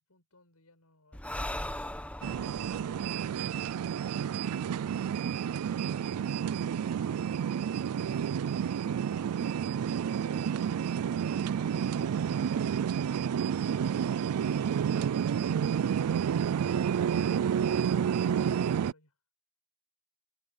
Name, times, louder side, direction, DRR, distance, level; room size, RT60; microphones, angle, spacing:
voice 1, 0.0-4.9 5.7-6.7 7.6-9.6 10.3-11.3 12.2-13.5 14.3-15.7 17.2-17.7 18.0-19.2, left 2 dB, 80° left, 7.2 m, -63 dB
Breathing, 1.1-4.7, left 1 dB, 5° left, 1.5 m, -40 dB
sound 1, 2.2-18.9, right 8 dB, 80° right, 0.3 m, -30 dB
head